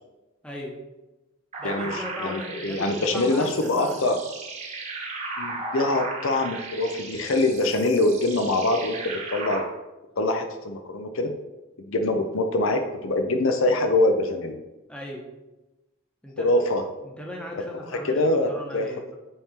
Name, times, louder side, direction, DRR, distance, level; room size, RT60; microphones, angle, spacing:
voice 1, 0.4-0.8 1.6-4.2 14.9-15.3 16.2-16.5 17.0-19.2, left 1 dB, 5° left, -2 dB, 1.1 m, -38 dB
sound 1, 1.5-9.6, right 3 dB, 35° right, 1.2 m, -36 dB
voice 2, 1.6-4.2 5.4-9.6 10.2-11.3 11.8-14.6 16.4-16.8 17.9-18.9, left 2 dB, 70° left, 6 dB, 0.6 m, -24 dB
8.7 x 3.6 x 4.3 m, 1.1 s
head